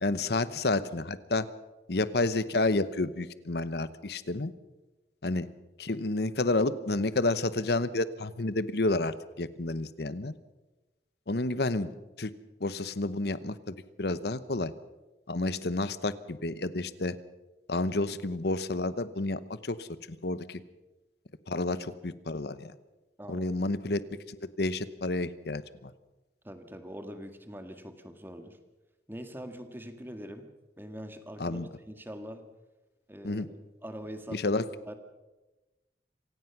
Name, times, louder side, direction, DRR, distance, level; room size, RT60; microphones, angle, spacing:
voice 1, 0.0-1.5 1.9-4.5 5.2-5.5 5.8-10.3 11.3-11.9 12.2-12.3 12.6-14.7 15.3-17.2 17.7-20.6 21.5-22.7 23.3-24.0 24.3-25.9 31.4-31.7 33.2-33.5 34.3-34.7, left 2 dB, 65° left, 15 dB, 1.0 m, -30 dB
voice 2, 23.2-23.5 26.4-28.6 29.1-30.5 30.8-32.4 33.1-33.5 33.8-34.4 34.9-35.0, equal, 10° right, 7 dB, 1.9 m, -43 dB
26.0 x 17.5 x 6.0 m, 1.1 s
head